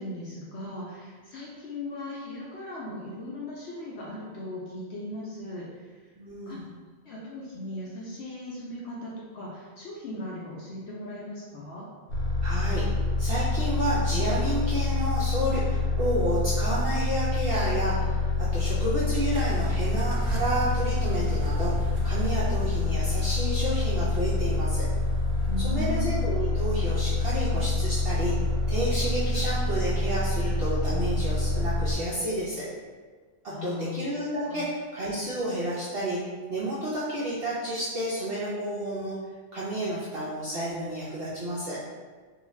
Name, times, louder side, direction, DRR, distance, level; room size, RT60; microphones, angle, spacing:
voice 1, 0.0-6.0 6.5-6.6 7.0-11.9 25.5-26.1 33.5-34.0 34.4-34.6, left 1 dB, 65° left, -5 dB, 0.7 m, -38 dB
voice 2, 6.2-6.6 12.4-12.9 13.2-21.7 22.0-24.9 25.6-28.3 28.7-32.6 33.4-36.2 36.5-39.1 39.5-41.8, right 1 dB, 65° right, -8 dB, 0.6 m, -30 dB
sound 1, 12.1-31.9, left 3 dB, 90° left, 1.1 m, -26 dB
sound 2, 18.1-30.9, equal, 85° right, 1.0 m, -42 dB
2.5 x 2.3 x 3.0 m, 1.5 s
omnidirectional pair, 1.5 m